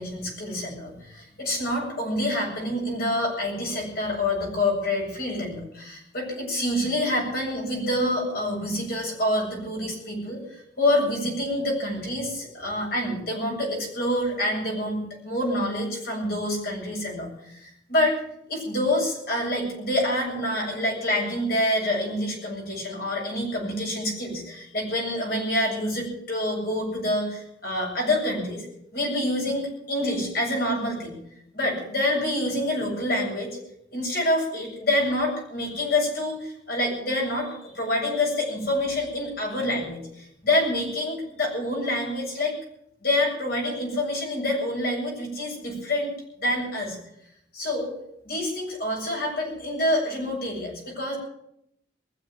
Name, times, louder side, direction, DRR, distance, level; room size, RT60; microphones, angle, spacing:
voice 1, 0.0-18.2 18.5-28.7 28.9-31.2 31.5-33.5 33.9-42.6 43.0-46.1 46.4-47.0 47.5-47.9 48.2-51.2, left 1 dB, 55° left, -2 dB, 7.6 m, -27 dB
21.0 x 7.5 x 9.1 m, 0.75 s
head